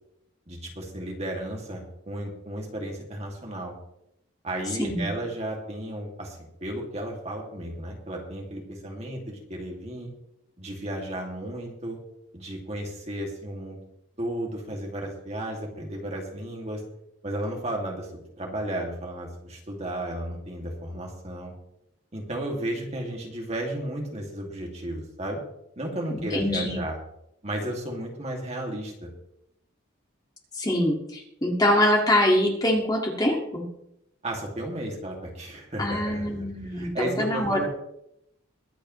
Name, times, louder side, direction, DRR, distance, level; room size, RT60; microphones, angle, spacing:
voice 1, 0.5-3.7 4.4-10.1 10.6-12.0 12.3-13.8 14.2-16.8 17.2-21.5 22.1-25.4 25.8-27.0 27.4-29.1 34.2-36.3 36.7-37.7, right 1 dB, 30° right, 0 dB, 2.4 m, -33 dB
voice 2, 26.3-26.8 30.5-33.7 35.8-37.7, left 1 dB, 20° left, 0 dB, 2.0 m, -24 dB
22.5 x 8.4 x 3.2 m, 0.79 s
head